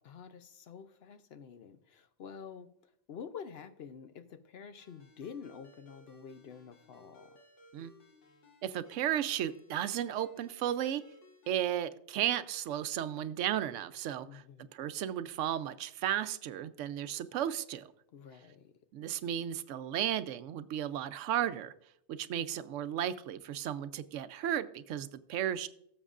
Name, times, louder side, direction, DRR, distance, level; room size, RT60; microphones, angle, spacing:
voice 1, 0.0-2.7 3.1-7.4 14.3-14.7 18.1-18.7, left 7 dB, 60° left, 10 dB, 0.8 m, -48 dB
Ringtone, 4.8-11.7, left 1 dB, 85° left, 1.9 m, -60 dB
voice 2, 8.6-11.0 11.5-14.4 14.7-17.9 18.9-21.7 22.1-25.7, right 10 dB, 90° right, 13 dB, 0.9 m, -34 dB
18.0 x 7.1 x 2.4 m, 0.74 s
omnidirectional pair, 1.2 m